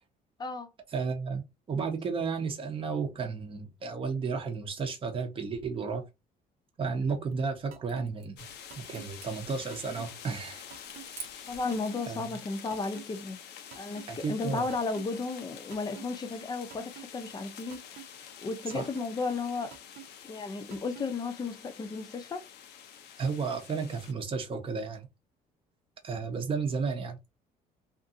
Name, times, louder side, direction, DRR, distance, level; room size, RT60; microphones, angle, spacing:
voice 1, 0.9-6.0 6.8-8.4 8.8-10.6 12.1-12.2 14.1-14.7 18.7-18.9 23.2-25.1 26.0-27.2, right 5 dB, 30° right, 0.8 m, -33 dB
sound 1, 7.1-11.8, right 6 dB, 90° right, 1.0 m, -51 dB
sound 2, 7.7-8.0 8.7-9.1 9.7-10.0 10.7-11.1 11.7-12.1 12.7-13.1 13.7-14.0 14.7-15.1 15.7-16.0 16.7-17.1 17.7-18.1 18.7-19.1 19.7-20.0 20.7-21.1, right 12 dB, 60° right, 0.4 m, -47 dB
sound 3, 8.4-24.1, left 8 dB, 80° left, 0.6 m, -48 dB
voice 2, 11.5-13.4 13.7-17.8 18.4-19.7 20.2-22.4, left 3 dB, 25° left, 0.6 m, -34 dB
2.6 x 2.5 x 2.6 m
cardioid pair, 110°, 17 cm